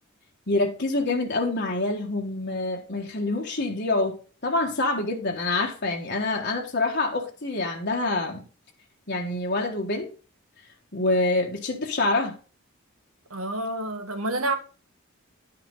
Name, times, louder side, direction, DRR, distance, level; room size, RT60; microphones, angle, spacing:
voice 1, 0.5-4.1 4.4-8.4 9.1-10.1 10.9-12.3, left 2 dB, 50° left, 1.5 m, -26 dB
voice 2, 13.3-14.5, right 2 dB, 80° right, 1.8 m, -28 dB
11.0 x 5.9 x 4.0 m
head